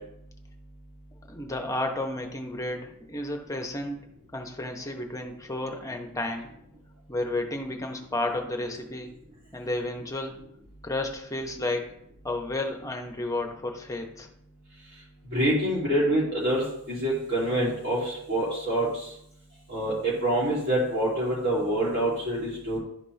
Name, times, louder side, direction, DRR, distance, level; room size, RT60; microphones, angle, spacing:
voice 1, 1.3-4.0 4.3-6.5 7.1-9.1 9.5-10.4 10.8-11.9 12.2-14.3, left 2 dB, 15° left, 3 dB, 0.8 m, -32 dB
voice 2, 15.3-19.1 19.7-22.8, right 1 dB, 45° right, -7 dB, 2.4 m, -26 dB
11.5 x 4.2 x 3.2 m, 0.74 s
head